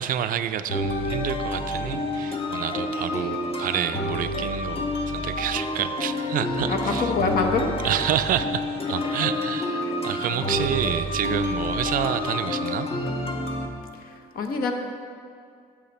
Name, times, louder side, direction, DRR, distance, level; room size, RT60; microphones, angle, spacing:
voice 1, 0.0-7.1 7.8-12.9, right 10 dB, 55° right, 11 dB, 0.4 m, -28 dB
sound 1, 0.7-13.7, left 1 dB, 35° left, 1.0 m, -28 dB
voice 2, 6.7-7.9 8.9-9.1 9.8-9.9 10.3-10.7 14.0-14.7, left 4 dB, 60° left, 4 dB, 1.0 m, -27 dB
8.1 x 7.0 x 4.2 m, 2.2 s
cardioid pair, 110°, 17 cm